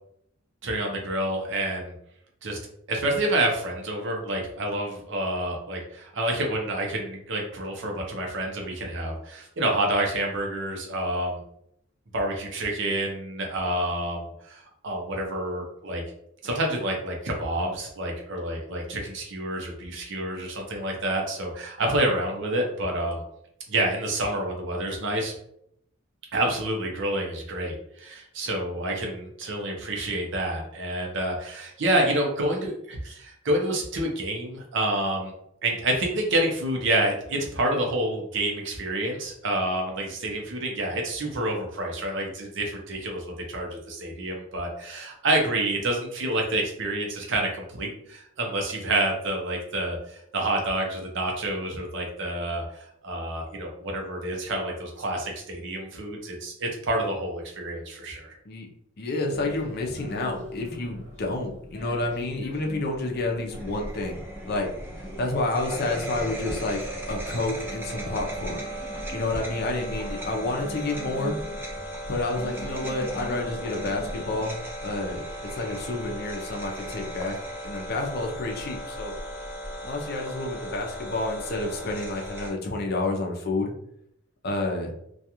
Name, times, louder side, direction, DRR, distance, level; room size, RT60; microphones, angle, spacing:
voice 1, 0.6-1.9 2.4-2.6 2.9-11.4 12.1-16.0 16.4-23.2 23.7-25.3 26.3-35.3 35.6-58.3, right 1 dB, 65° right, 1 dB, 0.6 m, -28 dB
voice 2, 59.0-64.2 64.5-66.8 67.1-68.6 69.1-71.4 72.1-75.2 75.5-77.4 77.6-79.1 79.8-83.7 84.4-84.9, left 2 dB, 55° left, 1 dB, 0.5 m, -29 dB
sound 1, 59.3-74.5, equal, 35° right, 0.9 m, -42 dB
sound 2, 63.5-82.5, right 1 dB, 10° right, 0.5 m, -36 dB
2.3 x 2.3 x 2.8 m, 0.74 s
head